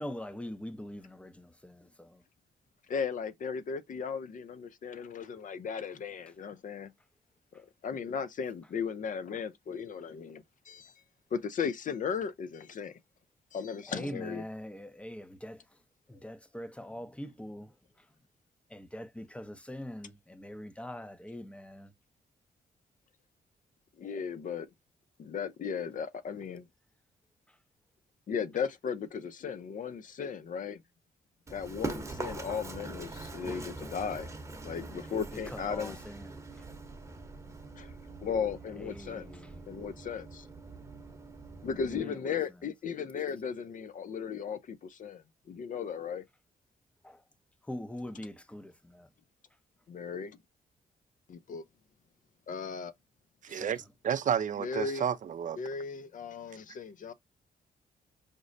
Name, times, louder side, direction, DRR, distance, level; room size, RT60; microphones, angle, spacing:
voice 1, 0.0-2.2 13.9-15.6 16.1-17.7 18.7-21.9 35.5-36.3 38.8-39.6 41.8-42.3 47.0-47.2 47.7-49.1 53.5-53.7, left 1 dB, 5° left, 0.6 m, -43 dB
voice 2, 2.9-6.9 7.5-10.9 11.3-13.0 13.5-14.4 24.0-24.7 25.2-26.7 28.3-30.8 31.5-34.3 34.6-36.0 37.8-39.3 39.7-40.5 41.6-46.2 49.9-50.4 51.3-51.6 52.5-52.9 54.6-55.1 55.6-57.1, left 6 dB, 55° left, 0.5 m, -36 dB
Run, 31.5-42.0, right 3 dB, 20° right, 0.9 m, -43 dB
voice 3, 53.4-55.6, right 8 dB, 55° right, 0.4 m, -31 dB
5.1 x 2.0 x 2.5 m
cardioid pair, 70°, 16 cm